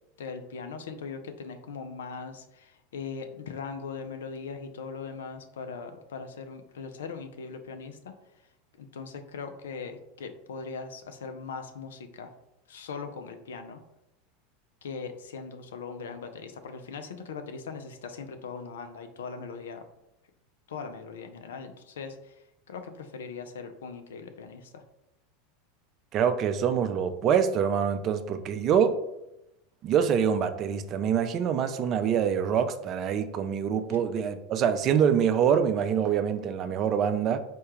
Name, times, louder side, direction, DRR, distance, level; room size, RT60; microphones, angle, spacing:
voice 1, 0.2-8.1 8.8-12.3 12.7-13.8 14.8-19.8 20.7-24.8 33.9-34.0, left 5 dB, 70° left, 7 dB, 0.4 m, -40 dB
voice 2, 26.1-29.0 29.8-37.4, right 8 dB, 40° right, 9 dB, 0.4 m, -25 dB
4.4 x 2.2 x 3.1 m, 0.86 s
figure-of-eight pair, 85°, 0 cm